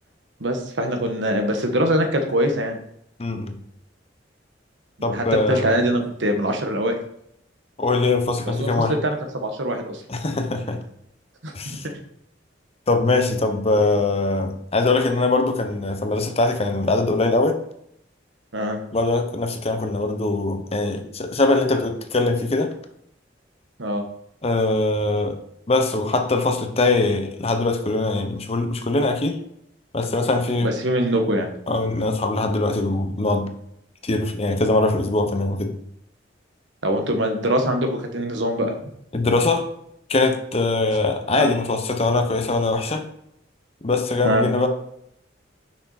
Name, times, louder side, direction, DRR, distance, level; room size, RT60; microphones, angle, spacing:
voice 1, 0.4-2.8 5.1-7.0 8.6-10.0 11.4-11.8 18.5-18.8 23.8-24.0 30.6-31.5 36.8-38.7 41.3-41.5 44.2-44.5, right 1 dB, 75° right, 5 dB, 1.2 m, -23 dB
voice 2, 3.2-3.6 5.0-5.8 7.8-9.0 10.1-10.8 11.5-11.9 12.9-17.6 18.9-22.7 24.4-25.4 25.7-29.4 29.9-30.7 31.7-33.5 34.0-35.7 39.1-39.7 40.1-43.1 43.8-44.7, left 2 dB, 35° left, 6 dB, 0.8 m, -22 dB
6.4 x 5.9 x 4.2 m, 0.73 s
head